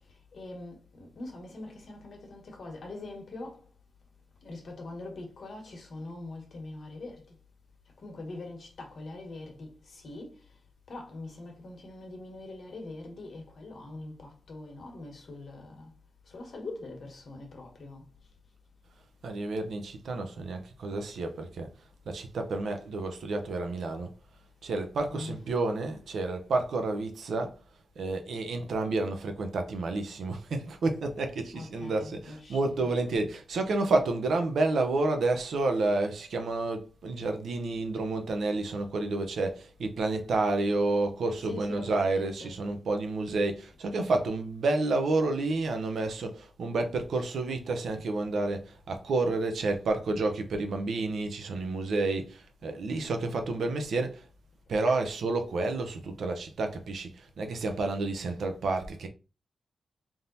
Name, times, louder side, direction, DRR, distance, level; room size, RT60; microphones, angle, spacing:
voice 1, 0.3-3.6 4.4-7.2 8.0-10.3 10.9-15.9 16.3-18.0 25.1-25.4 31.5-32.9 41.4-42.5 54.9-55.0, left 2 dB, 65° left, 1.4 m, -43 dB
voice 2, 19.2-21.7 22.1-24.1 24.6-27.6 28.0-54.3 54.7-59.1, right 3 dB, 85° right, 0.8 m, -30 dB
3.6 x 2.8 x 4.0 m
cardioid pair, 85°, 0 cm